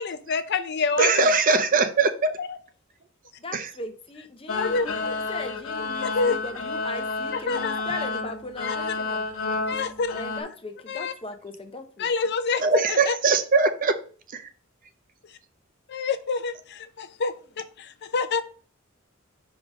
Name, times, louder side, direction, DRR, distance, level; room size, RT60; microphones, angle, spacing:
voice 1, 0.0-1.3 2.4-2.6 4.5-5.2 6.0-6.4 7.3-7.8 8.6-8.9 9.7-10.2 10.9-11.1 12.0-13.2 15.9-18.4, left 4 dB, 55° left, 0.5 m, -28 dB
voice 2, 1.0-2.3 3.5-3.7 12.6-14.0 14.3-14.4, right 4 dB, 40° right, 0.5 m, -21 dB
voice 3, 3.4-9.2 10.1-12.1, left 2 dB, 25° left, 0.7 m, -38 dB
sound 1, 4.5-10.4, left 3 dB, 85° left, 0.9 m, -30 dB
4.9 x 3.8 x 5.2 m
head